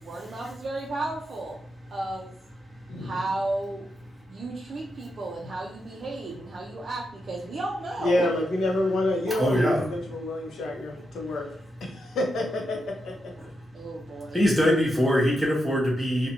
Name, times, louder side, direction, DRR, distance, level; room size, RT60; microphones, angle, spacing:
voice 1, 0.0-1.6 1.9-2.3 3.0-3.9 4.3-8.3 9.3-9.6 13.7-14.4, right 2 dB, 50° right, -2 dB, 0.4 m, -33 dB
voice 2, 8.0-11.4 11.8-13.3, left 1 dB, 85° left, 1 dB, 0.6 m, -28 dB
voice 3, 9.4-9.9 14.3-16.3, equal, 5° left, -4 dB, 0.5 m, -22 dB
2.6 x 2.1 x 2.8 m, 0.64 s
wide cardioid pair, 140°, 0 cm